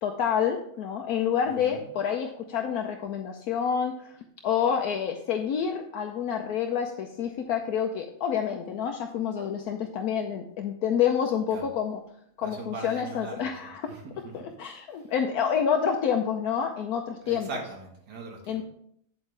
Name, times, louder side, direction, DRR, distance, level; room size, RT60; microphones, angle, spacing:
voice 1, 0.0-4.1 4.4-12.0 12.4-13.9 14.3-17.5 18.5-18.6, left 8 dB, 75° left, 4 dB, 1.1 m, -28 dB
voice 2, 1.5-1.8 11.5-11.6 12.4-13.5 13.9-14.3 17.2-18.6, right 3 dB, 90° right, 2 dB, 2.1 m, -39 dB
8.3 x 8.0 x 3.3 m, 0.67 s
omnidirectional pair, 1.7 m